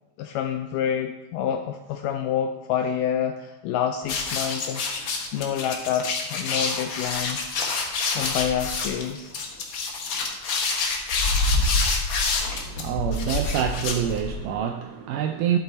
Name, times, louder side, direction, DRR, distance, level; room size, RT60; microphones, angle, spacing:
voice 1, 0.2-4.9 5.3-7.5 8.2-9.3, left 9 dB, 80° left, 1.9 m, -28 dB
sound 1, 4.0-14.5, left 3 dB, 65° left, 1.2 m, -26 dB
voice 2, 12.5-15.6, right 9 dB, 80° right, 1.9 m, -26 dB
11.5 x 9.8 x 4.1 m
omnidirectional pair, 4.3 m